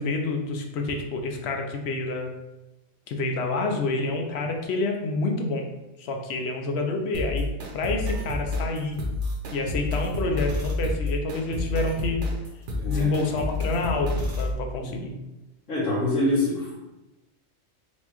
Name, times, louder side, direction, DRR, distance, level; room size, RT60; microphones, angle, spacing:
voice 1, 0.0-2.3 3.1-5.7 6.0-9.0 9.5-12.2 12.9-15.1, left 3 dB, 65° left, 3 dB, 0.8 m, -28 dB
sound 1, 7.1-14.5, left 2 dB, 70° right, 1.0 m, -29 dB
voice 2, 12.8-13.1 14.8-15.0 15.7-16.7, left 1 dB, 90° left, -7 dB, 1.9 m, -25 dB
4.4 x 2.2 x 2.9 m, 1.0 s
omnidirectional pair, 1.3 m